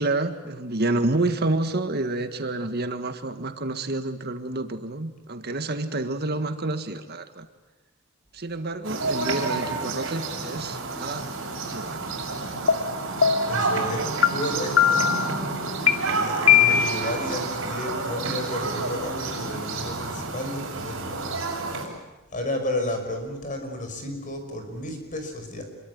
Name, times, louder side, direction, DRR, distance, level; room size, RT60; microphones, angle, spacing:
voice 1, 0.0-7.5 8.3-11.3 11.6-12.2, right 2 dB, 50° right, 8 dB, 1.8 m, -28 dB
sound 1, 8.8-21.8, right 3 dB, 70° right, 6.5 m, -29 dB
sound 2, 12.7-12.8 13.2-13.6 14.2-14.3 14.8-15.2 15.9-16.0 16.5-17.1, left 9 dB, 80° left, 2.5 m, -18 dB
voice 2, 13.5-15.1 16.1-21.3 21.7-21.9 22.3-25.6, left 1 dB, 40° left, 5 dB, 5.7 m, -32 dB
27.0 x 23.0 x 9.6 m, 1.1 s
head